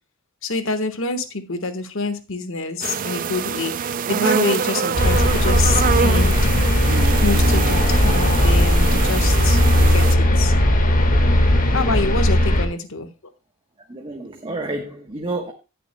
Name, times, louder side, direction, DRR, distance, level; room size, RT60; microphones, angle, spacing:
voice 1, 0.4-6.3 7.2-10.5 11.7-13.1, left 3 dB, 70° left, 1.3 m, -26 dB
sound 1, 2.8-10.1, right 7 dB, 40° right, 0.3 m, -25 dB
sound 2, 5.0-12.7, left 1 dB, 40° left, 1.6 m, -17 dB
voice 2, 13.9-15.5, right 2 dB, 25° right, 1.1 m, -30 dB
18.0 x 6.8 x 2.2 m
head